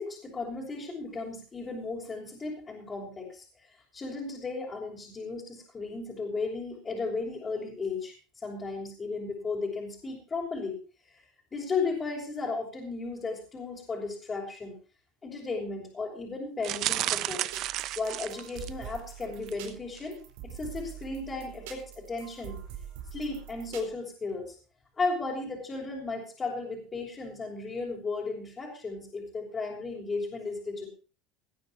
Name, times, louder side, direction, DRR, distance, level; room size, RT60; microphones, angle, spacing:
voice 1, 0.0-3.4 3.9-8.1 8.4-10.8 11.5-14.7 15.2-17.4 18.0-20.2 20.4-22.6 23.1-24.5 25.0-30.9, left 3 dB, 25° left, -4 dB, 6.0 m, -35 dB
sound 1, 16.6-18.9 19.4-19.7 20.0-20.1, right 14 dB, 55° right, 0.8 m, -32 dB
sound 2, 17.5-23.9, right 9 dB, 75° right, 4.4 m, -44 dB
19.0 x 9.7 x 4.5 m, 0.36 s
supercardioid pair, 105°, 0 cm